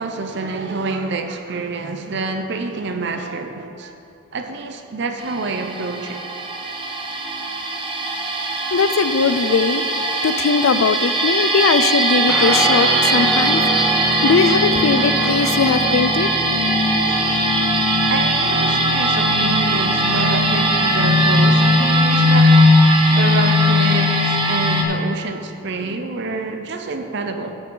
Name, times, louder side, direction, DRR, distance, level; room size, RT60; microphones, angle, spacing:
voice 1, 0.0-4.0 4.3-6.2 17.1-17.6 18.1-22.8 23.1-27.6, right 3 dB, 55° right, 5 dB, 0.6 m, -27 dB
sound 1, 5.2-24.8, equal, 25° right, 0.8 m, -18 dB
voice 2, 8.7-9.8 10.2-13.9 14.2-16.4, left 5 dB, 75° left, 12 dB, 0.4 m, -19 dB
Guitar, 12.3-22.0, equal, ahead, 0.4 m, -30 dB
14.0 x 6.1 x 3.9 m, 2.7 s
head